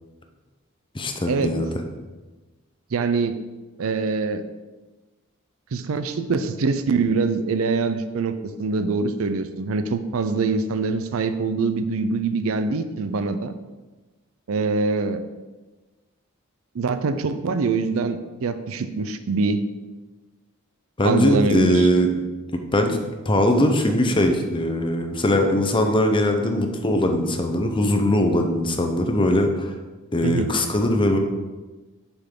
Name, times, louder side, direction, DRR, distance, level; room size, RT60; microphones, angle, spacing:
voice 1, 0.9-1.7 21.0-22.1 22.7-23.0 23.3-29.7 30.1-31.2, left 1 dB, 25° left, 5 dB, 0.7 m, -20 dB
voice 2, 2.9-3.4 3.8-4.4 5.7-13.5 14.5-15.2 16.7-19.6 21.0-21.9 30.2-30.5, right 4 dB, 70° right, 10 dB, 0.5 m, -24 dB
7.0 x 5.7 x 3.7 m, 1.2 s
head